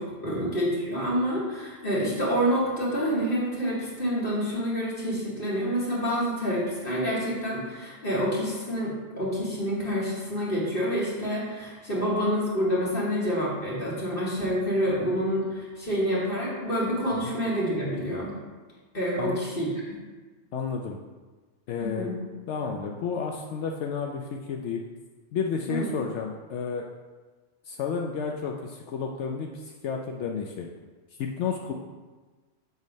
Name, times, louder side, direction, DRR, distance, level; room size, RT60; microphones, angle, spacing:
voice 1, 0.0-18.4 18.9-20.0 21.8-22.1 25.7-25.9, equal, 50° left, -7 dB, 2.3 m, -28 dB
voice 2, 20.5-21.0 21.7-22.1 22.5-24.8 25.3-26.8 27.7-30.7 31.2-31.7, left 6 dB, 80° left, 2 dB, 0.9 m, -31 dB
7.1 x 4.1 x 5.2 m, 1.3 s
omnidirectional pair, 1.2 m